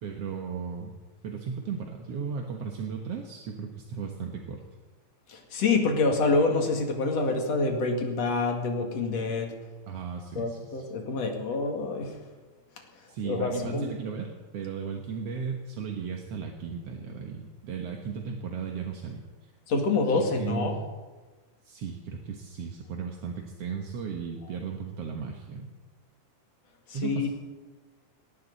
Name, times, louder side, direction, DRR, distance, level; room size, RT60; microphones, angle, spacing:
voice 1, 0.0-1.0 1.2-4.6 9.9-10.8 13.1-19.5 20.2-20.8 21.6-25.7 26.9-27.3, right 6 dB, 60° right, 2 dB, 1.9 m, -36 dB
voice 2, 5.3-9.5 10.4-12.1 13.2-13.9 19.7-20.7 27.0-27.3, left 3 dB, 50° left, 2 dB, 3.1 m, -26 dB
19.5 x 18.0 x 4.1 m, 1.3 s
omnidirectional pair, 3.9 m